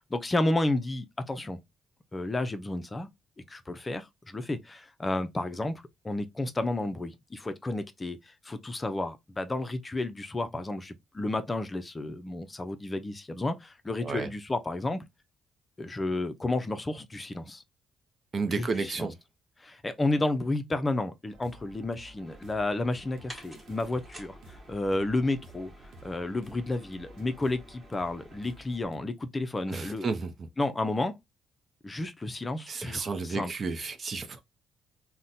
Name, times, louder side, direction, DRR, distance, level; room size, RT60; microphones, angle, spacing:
voice 1, 0.1-1.6 2.1-3.1 3.5-15.0 15.8-17.6 18.5-19.1 19.6-25.7 26.0-30.1 30.6-31.2 31.8-33.5, left 2 dB, 25° left, 0.5 m, -31 dB
voice 2, 18.3-19.1 29.7-30.5 32.7-34.4, right 4 dB, 45° right, 0.6 m, -32 dB
sound 1, 21.3-29.0, right 2 dB, 85° right, 0.6 m, -52 dB
sound 2, 22.2-28.6, equal, 10° right, 1.3 m, -52 dB
3.8 x 2.1 x 2.6 m
cardioid pair, 90°, 0 cm